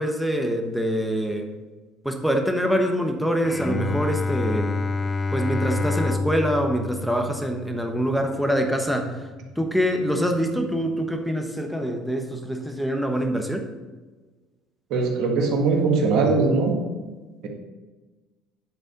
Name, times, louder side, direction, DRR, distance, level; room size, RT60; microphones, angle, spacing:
voice 1, 0.0-1.5 2.0-4.8 5.3-9.3 9.6-13.7, equal, ahead, 3 dB, 1.2 m, -25 dB
Bowed string instrument, 3.4-8.7, left 3 dB, 25° left, 0.5 m, -28 dB
voice 2, 14.9-16.8, right 4 dB, 65° right, 1 dB, 1.7 m, -20 dB
9.3 x 4.1 x 5.2 m, 1.3 s
supercardioid pair, 85°, 0 cm